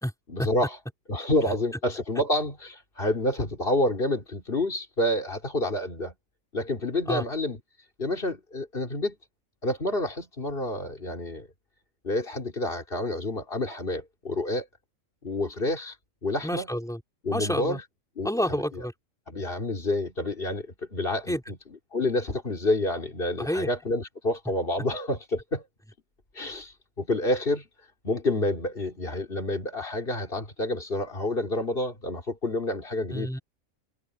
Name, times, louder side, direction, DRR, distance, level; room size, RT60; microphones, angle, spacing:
voice 1, 0.3-0.8 1.1-6.1 6.5-7.6 8.0-9.2 9.6-11.5 12.0-14.7 15.2-16.0 16.2-16.7 17.2-17.8 18.2-18.3 19.3-21.6 21.9-25.6 26.4-26.7 27.0-27.6 28.0-33.3, left 1 dB, 40° left, 3.6 m, -28 dB
voice 2, 16.4-17.0 17.3-17.8 18.2-18.9 21.3-21.4 23.4-23.7 33.1-33.4, equal, ahead, 3.3 m, -29 dB
omnidirectional pair, 1.4 m